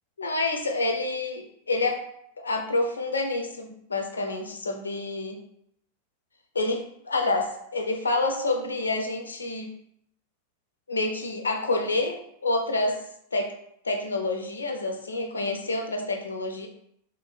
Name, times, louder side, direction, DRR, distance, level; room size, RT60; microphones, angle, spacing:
voice 1, 0.2-2.1 2.4-5.4 6.5-9.7 10.9-13.0 13.3-13.5 13.8-16.7, left 2 dB, 75° left, 4 dB, 0.4 m, -28 dB
2.7 x 2.0 x 3.2 m, 0.73 s
figure-of-eight pair, 90°, 0 cm